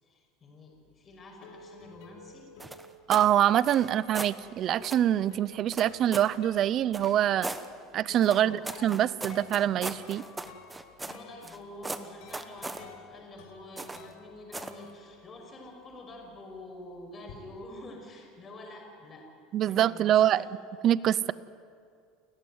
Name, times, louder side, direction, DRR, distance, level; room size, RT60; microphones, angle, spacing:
voice 1, 0.0-2.5 8.3-8.6 11.0-19.3 19.6-20.5, left 1 dB, 25° left, 1 dB, 5.5 m, -47 dB
sound 1, 0.9-15.7 15.9-17.4, left 4 dB, 75° left, 3.2 m, -52 dB
sound 2, 2.6-3.3 3.6-4.4 4.8-5.1 5.7-6.4 6.9-7.7 8.2-11.6 11.8-12.8 13.8-14.1 14.5-14.8, right 2 dB, 10° right, 1.0 m, -38 dB
voice 2, 3.1-7.5 7.9-10.2 19.5-20.4 20.8-21.3, right 11 dB, 40° right, 19 dB, 0.5 m, -25 dB
29.5 x 14.5 x 9.4 m, 2.3 s
cardioid pair, 150°, 0 cm